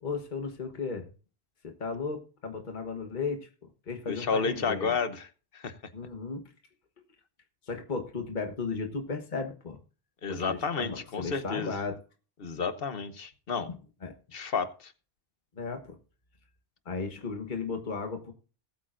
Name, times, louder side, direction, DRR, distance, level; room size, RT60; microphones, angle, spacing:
voice 1, 0.0-1.1 1.6-3.5 3.9-4.9 5.9-6.4 7.6-9.8 10.3-12.0 13.7-14.1 15.6-16.0 16.8-18.3, left 4 dB, 50° left, 5 dB, 1.5 m, -35 dB
voice 2, 4.1-5.3 5.5-5.7 10.2-11.7 12.4-13.7 14.3-14.9, left 5 dB, 65° left, 11 dB, 1.2 m, -31 dB
19.5 x 8.6 x 2.6 m, 0.37 s
omnidirectional pair, 1.1 m